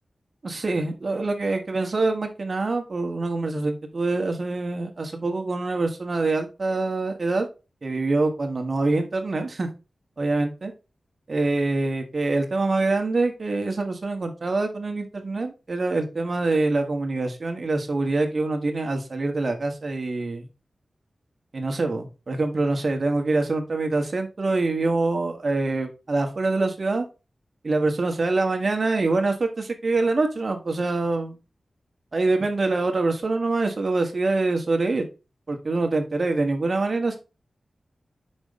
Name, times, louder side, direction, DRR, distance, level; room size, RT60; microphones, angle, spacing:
voice 1, 0.4-7.5 7.8-9.7 10.2-10.7 11.3-20.5 21.5-27.1 27.6-31.4 32.1-35.0 35.5-37.2, right 3 dB, 45° right, 4 dB, 1.5 m, -25 dB
6.0 x 5.4 x 3.5 m, 0.29 s
wide cardioid pair, 110°, 0 cm